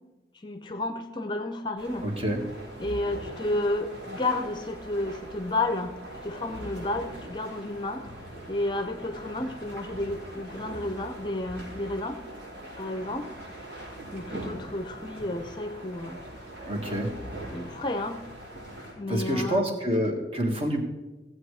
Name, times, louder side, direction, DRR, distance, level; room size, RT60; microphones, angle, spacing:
voice 1, 0.4-2.0 2.8-5.9 6.2-8.1 8.5-12.2 12.8-13.3 14.1-16.2 17.5-18.2 19.0-19.6, left 2 dB, 25° left, 7 dB, 0.7 m, -31 dB
sound 1, 1.8-18.9, right 1 dB, 90° right, 4.8 m, -42 dB
voice 2, 2.0-2.4 16.6-17.1 19.1-20.8, equal, 35° right, 3 dB, 1.7 m, -27 dB
16.0 x 7.9 x 4.9 m, 1.1 s
head